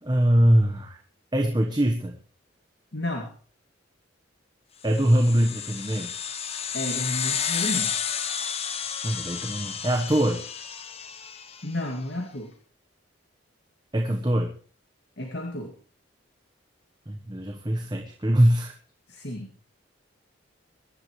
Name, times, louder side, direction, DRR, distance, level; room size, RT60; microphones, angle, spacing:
voice 1, 0.0-1.0 1.3-2.2 4.8-6.1 9.0-10.4 13.9-14.5 17.1-18.7, equal, 20° right, 3 dB, 1.2 m, -22 dB
voice 2, 2.9-3.3 6.7-8.0 11.6-12.5 15.2-15.7 19.1-19.5, left 1 dB, 60° left, 2 dB, 2.3 m, -32 dB
sound 1, 4.9-11.7, left 7 dB, 30° left, 1.0 m, -31 dB
23.0 x 11.5 x 3.2 m, 0.42 s
head